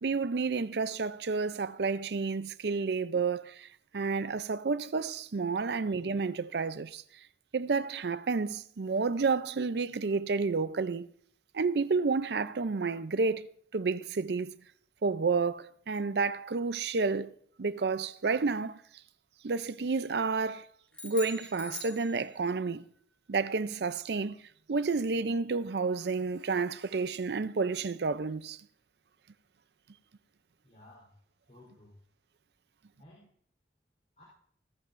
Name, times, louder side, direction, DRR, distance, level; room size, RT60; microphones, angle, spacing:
voice 1, 0.0-3.7 3.9-7.0 7.5-11.1 11.5-13.5 13.7-14.6 15.0-17.3 17.6-18.8 19.4-20.7 21.0-22.9 23.3-24.4 24.7-28.6, right 4 dB, 70° right, 0.5 m, -30 dB
sound 1, 20.9-22.7, left 3 dB, 5° left, 2.2 m, -44 dB
voice 2, 30.6-31.1 31.5-32.0 33.0-33.3 34.2-34.3, left 1 dB, 40° left, 3.8 m, -56 dB
17.0 x 14.5 x 2.6 m
head